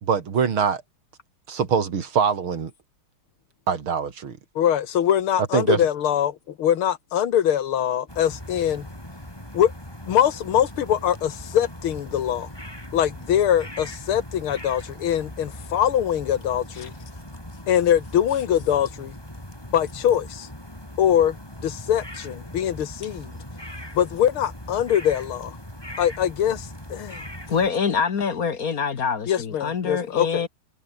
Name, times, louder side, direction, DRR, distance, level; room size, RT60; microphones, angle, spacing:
voice 1, 0.0-0.8 1.5-2.7 3.7-4.4 5.5-5.8, right 6 dB, 75° right, 3.1 m, -23 dB
voice 2, 4.6-8.9 9.5-9.7 10.1-12.5 12.9-16.9 17.7-19.2 19.7-20.5 21.0-21.4 21.6-23.3 23.9-25.6 26.0-27.3 29.3-30.4, left 10 dB, 80° left, 2.1 m, -23 dB
sound 1, 8.1-27.7, left 1 dB, 10° left, 6.3 m, -40 dB
voice 3, 27.5-30.5, left 6 dB, 45° left, 1.8 m, -25 dB
omnidirectional pair, 2.3 m